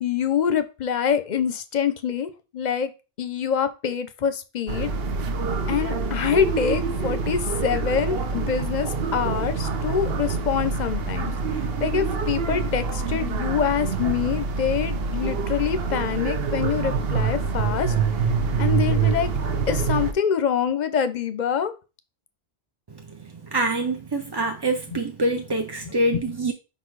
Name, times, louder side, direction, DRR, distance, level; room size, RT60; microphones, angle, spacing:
voice 1, 0.0-2.9 3.2-4.9 5.7-17.9 18.6-19.3 19.7-21.7, left 7 dB, 50° left, 0.7 m, -25 dB
sound 1, 4.7-20.1, right 5 dB, 65° right, 1.0 m, -26 dB
voice 2, 23.1-26.5, right 2 dB, 35° right, 0.4 m, -25 dB
5.2 x 4.1 x 4.6 m
omnidirectional pair, 1.1 m